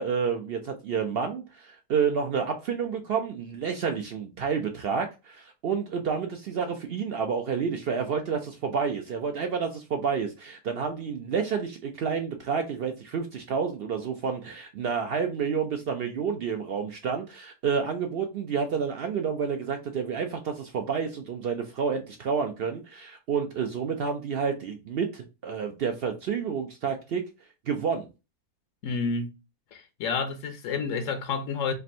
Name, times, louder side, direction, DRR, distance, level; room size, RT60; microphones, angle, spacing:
voice 1, 0.0-27.3 27.7-28.1, right 6 dB, 70° right, 0.5 m, -29 dB
voice 2, 28.8-29.3 29.7-31.7, left 5 dB, 70° left, 1.0 m, -29 dB
3.4 x 2.5 x 4.1 m
omnidirectional pair, 1.5 m